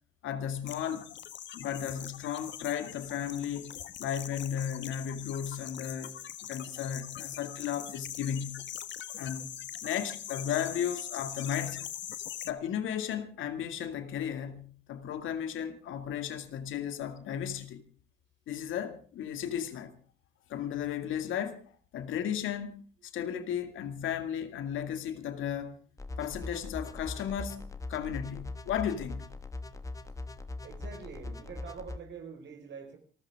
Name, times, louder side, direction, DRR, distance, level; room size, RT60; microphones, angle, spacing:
voice 1, 0.2-1.1 1.5-3.7 4.0-6.2 6.5-8.6 9.2-9.5 9.8-11.9 12.5-17.8 18.5-19.9 20.5-21.6 21.9-22.7 23.1-25.8 26.2-27.6 27.9-29.3, left 9 dB, 85° left, 2.3 m, -34 dB
sound 1, 0.7-12.5, left 11 dB, 65° left, 1.3 m, -42 dB
sound 2, 26.0-32.0, left 2 dB, 15° left, 1.3 m, -41 dB
voice 2, 30.6-33.0, right 6 dB, 65° right, 5.0 m, -45 dB
28.0 x 14.0 x 3.6 m
cardioid pair, 90°, 20 cm